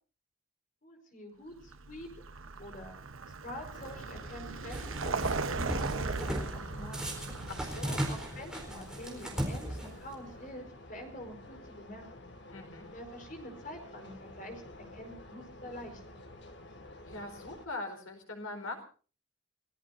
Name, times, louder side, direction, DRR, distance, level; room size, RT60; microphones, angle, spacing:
voice 1, 0.8-2.1 2.6-3.0 3.4-5.2 5.5-7.3 8.1-12.3 12.9-14.6 14.9-16.2, equal, 40° left, 4 dB, 4.8 m, -46 dB
Vehicle, 1.6-10.4, right 3 dB, 80° right, 1.0 m, -38 dB
sound 1, 3.7-17.7, left 1 dB, 55° left, 2.2 m, -50 dB
sound 2, 4.7-5.3 5.7-6.5 6.9-10.1, right 1 dB, 5° right, 4.2 m, -36 dB
voice 2, 7.5-8.1 12.5-12.9 17.0-18.9, left 2 dB, 85° left, 4 dB, 4.5 m, -42 dB
29.5 x 17.0 x 2.7 m, 0.37 s
head